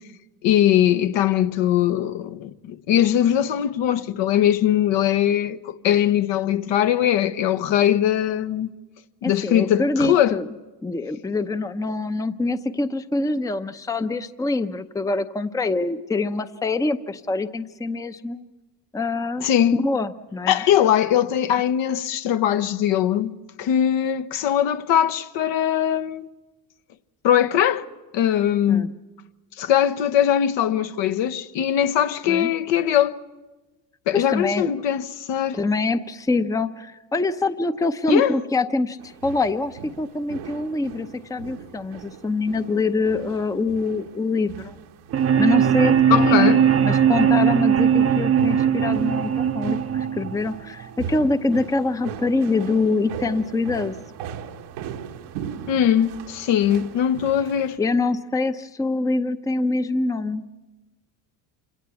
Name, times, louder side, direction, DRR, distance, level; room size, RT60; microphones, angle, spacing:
voice 1, 0.4-8.7 9.2-10.4 19.4-19.7 20.5-26.3 27.2-27.8 28.1-28.9 29.6-33.2 34.1-35.6 38.1-38.4 46.1-46.7 55.7-57.8, left 10 dB, 60° left, 1.0 m, -21 dB
voice 2, 9.2-10.5 10.8-18.5 18.9-19.5 19.7-20.7 28.7-28.9 32.3-32.5 34.1-34.7 35.5-44.7 45.4-46.5 46.8-54.0 57.8-60.5, left 3 dB, 5° left, 0.7 m, -25 dB
sound 1, 39.0-57.8, right 8 dB, 80° right, 1.5 m, -39 dB
sound 2, 45.1-51.1, right 8 dB, 30° right, 0.7 m, -19 dB
26.5 x 17.0 x 7.0 m
supercardioid pair, 85°, 49 cm